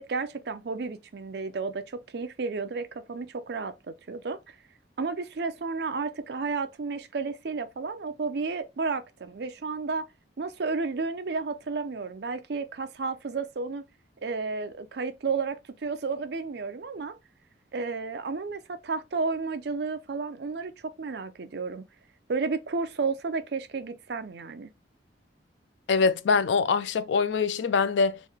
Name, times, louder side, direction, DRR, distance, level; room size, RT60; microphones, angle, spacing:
voice 1, 0.0-4.4 5.0-10.1 10.4-13.8 14.2-17.2 17.7-21.8 22.3-24.7, right 4 dB, 60° right, 0.5 m, -32 dB
voice 2, 25.9-28.2, left 5 dB, 80° left, 0.4 m, -24 dB
3.1 x 2.7 x 3.5 m
head